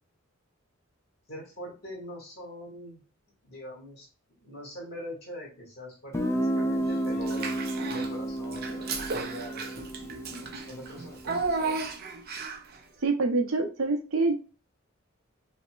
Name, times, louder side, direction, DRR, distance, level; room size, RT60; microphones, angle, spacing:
voice 1, 1.3-3.0 3.4-4.1 4.4-7.6 7.9-9.9 10.7-11.9, equal, 55° left, -1 dB, 1.6 m, -43 dB
Guitar, 6.1-11.7, right 1 dB, 15° left, 0.3 m, -32 dB
Child speech kid speaking / Bathtub (filling or washing), 7.2-8.1 8.5-12.7, right 4 dB, 50° right, 0.5 m, -34 dB
voice 2, 13.0-14.3, right 3 dB, 90° right, 5 dB, 0.7 m, -26 dB
5.2 x 2.1 x 2.3 m, 0.35 s
head